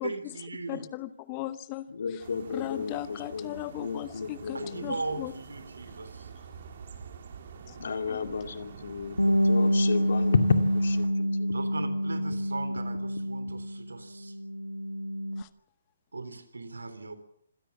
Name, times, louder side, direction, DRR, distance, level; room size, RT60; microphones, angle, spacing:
voice 1, 0.0-0.9 4.5-6.3 11.5-14.3 16.1-17.2, right 3 dB, 75° right, 11 dB, 3.6 m, -38 dB
voice 2, 0.7-1.9 2.5-5.3 7.7-7.8 8.1-8.2 15.4-15.5, left 15 dB, 25° left, 16 dB, 0.9 m, -37 dB
voice 3, 1.9-4.9 7.8-11.7, left 5 dB, 60° left, 7 dB, 2.4 m, -32 dB
sound 1, 2.2-11.1, right 6 dB, 50° right, 3.5 m, -47 dB
Bass guitar, 9.2-13.9 14.2-15.4, equal, 90° left, 1.5 m, -27 dB
26.0 x 17.0 x 7.3 m, 0.68 s
figure-of-eight pair, 135°, 0 cm